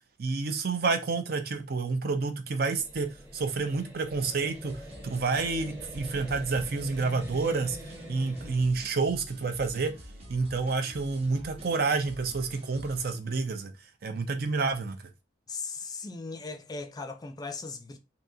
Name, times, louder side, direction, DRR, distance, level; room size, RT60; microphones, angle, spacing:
voice 1, 0.2-7.8 8.1-9.9 10.3-13.7 14.0-15.0, right 4 dB, 55° right, 0.6 m, -29 dB
sound 1, 2.7-8.6, equal, 15° right, 0.9 m, -45 dB
sound 2, 4.1-13.2, equal, 35° right, 0.9 m, -48 dB
voice 2, 15.5-18.0, left 4 dB, 20° left, 0.4 m, -38 dB
3.6 x 2.8 x 2.7 m
head